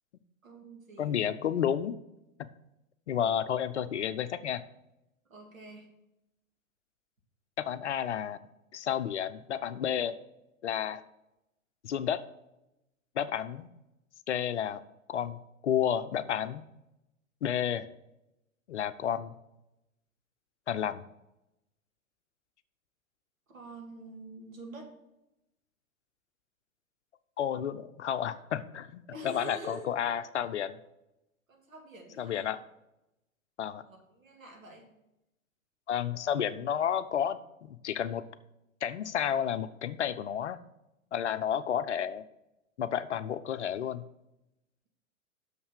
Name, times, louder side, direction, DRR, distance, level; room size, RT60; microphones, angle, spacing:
voice 1, 0.4-1.2 5.3-5.9 23.5-24.9 29.1-29.9 31.5-32.5 33.8-34.9, right 2 dB, 70° right, 1 dB, 2.2 m, -46 dB
voice 2, 1.0-2.0 2.4-2.5 3.1-4.6 7.6-8.4 8.7-10.2 10.6-11.0 11.8-12.2 13.2-13.7 14.3-14.8 15.1-16.6 17.4-17.9 18.7-19.4 20.7-21.0 27.4-30.8 32.2-32.6 33.6-33.8 35.9-38.2 38.8-40.6 41.1-42.2 42.8-44.0, left 9 dB, 55° left, 12 dB, 0.6 m, -31 dB
6.5 x 5.5 x 6.5 m, 0.89 s
figure-of-eight pair, 105°, 41 cm